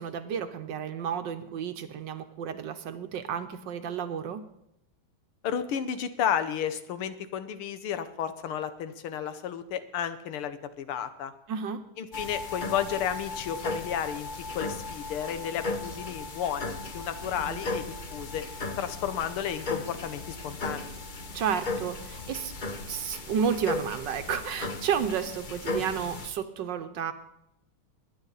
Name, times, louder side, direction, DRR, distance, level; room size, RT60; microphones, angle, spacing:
voice 1, 0.0-4.4 11.5-11.8 17.4-17.8 21.3-22.5 22.9-27.1, right 7 dB, 65° right, 9 dB, 1.4 m, -31 dB
voice 2, 5.4-11.3 12.0-14.3 14.5-18.4 18.8-21.0, left 9 dB, 85° left, 11 dB, 1.9 m, -32 dB
sound 1, 12.1-26.3, left 3 dB, 40° left, 0.6 m, -36 dB
21.5 x 9.7 x 4.0 m, 0.80 s
omnidirectional pair, 2.3 m